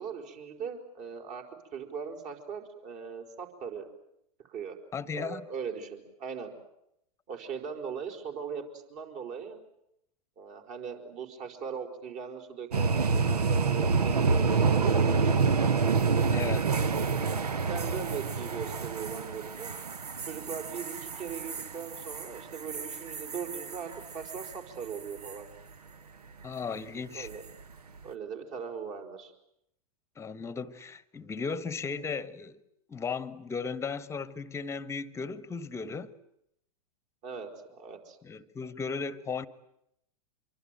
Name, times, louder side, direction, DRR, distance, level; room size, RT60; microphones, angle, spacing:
voice 1, 0.0-1.4 1.7-3.9 4.4-4.8 5.1-6.5 7.3-8.6 8.9-9.6 10.4-15.5 17.5-19.8 20.3-25.5 27.1-27.4 28.0-29.3 37.2-38.2, right 6 dB, 40° right, 5.0 m, -39 dB
voice 2, 4.9-5.4 16.3-16.7 26.4-27.3 30.2-32.6 32.9-36.1 38.2-39.5, left 5 dB, 15° left, 1.1 m, -36 dB
sound 1, 12.7-24.6 24.9-25.3 27.3-27.6, right 5 dB, 80° right, 1.0 m, -28 dB
26.5 x 23.5 x 9.2 m
figure-of-eight pair, 105°, 20 cm